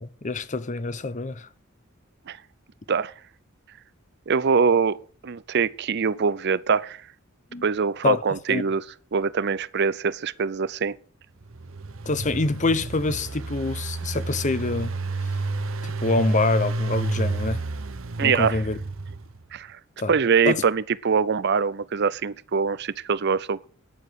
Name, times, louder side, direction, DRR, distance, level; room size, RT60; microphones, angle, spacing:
voice 1, 0.0-1.5 7.5-7.6 8.0-8.6 12.0-14.9 15.8-17.6 18.2-18.8 20.0-20.1 20.5-20.6, left 3 dB, 35° left, 0.8 m, -26 dB
voice 2, 4.3-7.0 7.6-8.8 9.1-10.9 18.2-18.6 19.5-19.8 20.1-23.7, right 5 dB, 55° right, 0.6 m, -23 dB
Engine, 11.4-19.4, right 3 dB, 75° right, 0.9 m, -30 dB
11.0 x 7.1 x 7.8 m
head